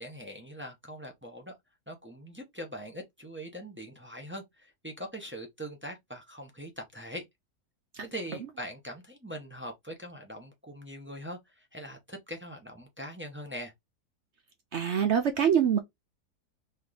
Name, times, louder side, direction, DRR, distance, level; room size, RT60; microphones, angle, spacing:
voice 1, 0.0-1.6 1.9-7.2 8.0-13.7, equal, 15° right, 0.5 m, -42 dB
voice 2, 14.7-15.8, right 8 dB, 65° right, 0.7 m, -24 dB
3.3 x 3.0 x 3.8 m
omnidirectional pair, 1.7 m